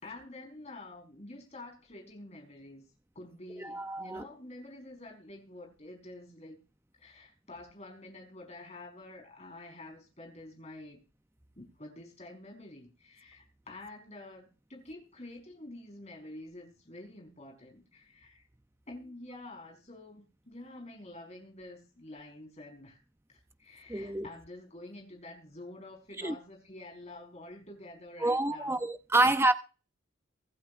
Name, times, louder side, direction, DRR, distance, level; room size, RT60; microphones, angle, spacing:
voice 1, 0.0-2.8 3.1-6.6 7.0-11.0 11.6-18.4 18.9-23.0 23.6-28.8 29.2-29.3, left 2 dB, 30° left, 4.8 m, -48 dB
voice 2, 3.6-4.2 23.9-24.3 26.2-26.4 28.2-29.5, right 2 dB, 10° right, 0.7 m, -27 dB
24.0 x 8.6 x 2.6 m
head